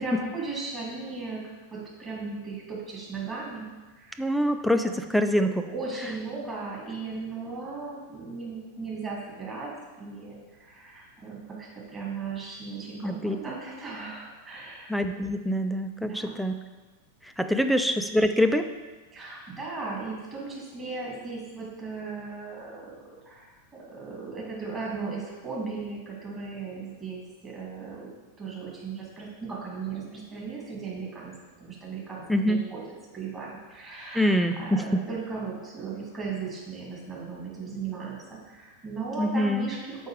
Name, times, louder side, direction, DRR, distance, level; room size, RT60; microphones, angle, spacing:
voice 1, 0.0-1.4 1.7-3.7 3.9-4.3 5.3-9.7 10.0-15.0 16.0-16.4 17.5-17.7 19.1-22.9 23.2-28.1 28.4-31.3 31.6-32.8 33.1-38.2 38.5-40.1, right 4 dB, 20° right, -4 dB, 2.6 m, -37 dB
voice 2, 4.2-5.6 13.0-13.4 14.9-16.5 17.2-18.7 32.3-32.6 34.1-35.0 39.2-39.7, equal, ahead, 7 dB, 0.5 m, -25 dB
6.4 x 5.1 x 4.9 m, 1.2 s
figure-of-eight pair, 90°, 0 cm